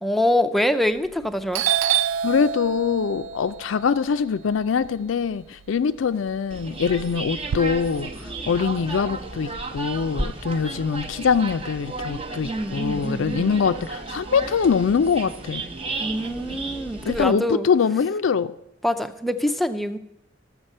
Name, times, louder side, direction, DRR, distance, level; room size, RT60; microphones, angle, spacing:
voice 1, 0.0-1.6 12.4-13.5 16.0-17.7 18.8-20.0, left 1 dB, ahead, 0.4 m, -24 dB
Doorbell, 1.0-1.2 1.5-5.7 6.0-7.6, right 9 dB, 85° right, 0.3 m, -27 dB
voice 2, 2.2-15.6 17.1-18.5, left 6 dB, 90° left, 0.4 m, -23 dB
sound 1, 6.5-17.3, right 3 dB, 30° right, 0.7 m, -34 dB
12.5 x 7.2 x 5.4 m
head